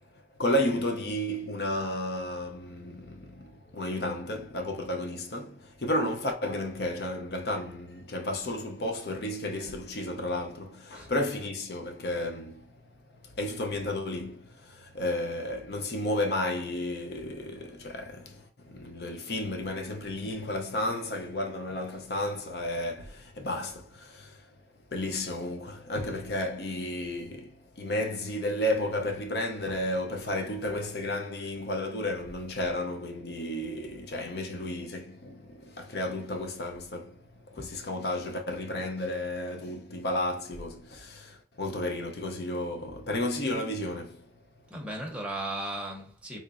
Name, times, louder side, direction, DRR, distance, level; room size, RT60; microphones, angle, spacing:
voice 1, 0.4-12.8 13.2-24.5 24.9-44.3, left 1 dB, 60° left, 0.6 m, -32 dB
voice 2, 44.7-46.4, right 1 dB, 5° right, 0.7 m, -36 dB
3.7 x 3.0 x 2.4 m
head